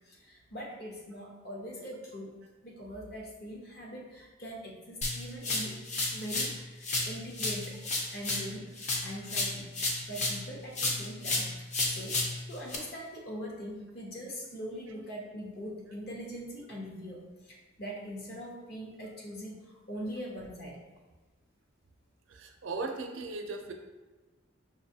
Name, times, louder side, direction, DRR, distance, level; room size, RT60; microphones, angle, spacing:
voice 1, 0.1-2.3 2.6-7.8 8.1-9.7 10.1-12.2 12.5-17.2 17.5-19.6 19.9-20.8, equal, 50° left, -3 dB, 0.9 m, -42 dB
sound 1, 5.0-6.6 6.8-10.5 10.8-12.8, left 2 dB, 35° left, 0.5 m, -32 dB
voice 2, 22.3-23.7, right 3 dB, 70° right, 4 dB, 0.5 m, -37 dB
5.3 x 2.6 x 2.7 m, 1.2 s
head